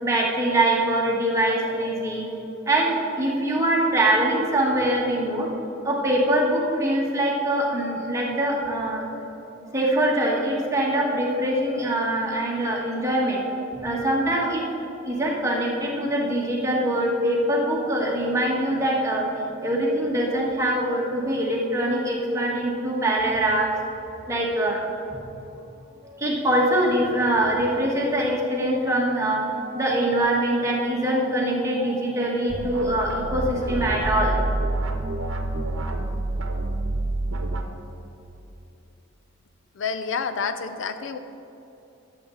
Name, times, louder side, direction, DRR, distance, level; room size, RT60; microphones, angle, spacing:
voice 1, 0.0-2.4 2.6-5.5 5.8-9.0 9.4-23.7 24.3-24.8 26.2-34.5, right 1 dB, 15° right, -3 dB, 1.5 m, -23 dB
sound 1, 32.5-37.6, right 2 dB, 85° right, 0.9 m, -27 dB
voice 2, 39.8-41.2, left 5 dB, 65° left, 9 dB, 0.5 m, -28 dB
12.5 x 7.6 x 3.8 m, 3.0 s
head